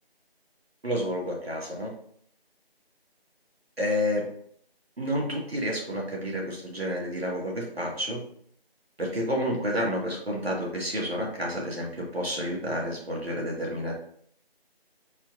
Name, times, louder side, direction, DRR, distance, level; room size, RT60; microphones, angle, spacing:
voice 1, 0.8-1.9 3.8-4.3 5.0-8.2 9.0-13.9, equal, 75° right, -2 dB, 1.8 m, -30 dB
4.4 x 2.7 x 3.6 m, 0.63 s
figure-of-eight pair, 180°, 31 cm